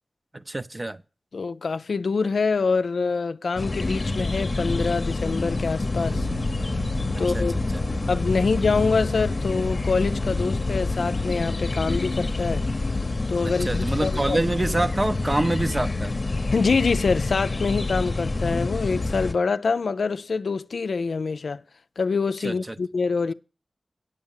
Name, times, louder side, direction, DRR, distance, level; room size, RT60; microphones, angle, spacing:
voice 1, 0.5-1.0 7.1-7.7 13.7-16.1 22.4-22.5, right 1 dB, 30° right, 0.7 m, -26 dB
voice 2, 1.3-6.3 7.2-7.5 8.1-12.6 13.3-14.4 16.5-21.6 22.0-23.3, left 4 dB, 85° left, 0.4 m, -25 dB
sound 1, 3.6-19.3, left 2 dB, 55° left, 0.8 m, -27 dB
Bass guitar, 6.1-15.9, right 7 dB, 85° right, 0.9 m, -46 dB
8.7 x 6.4 x 7.3 m
cardioid pair, 40°, 0 cm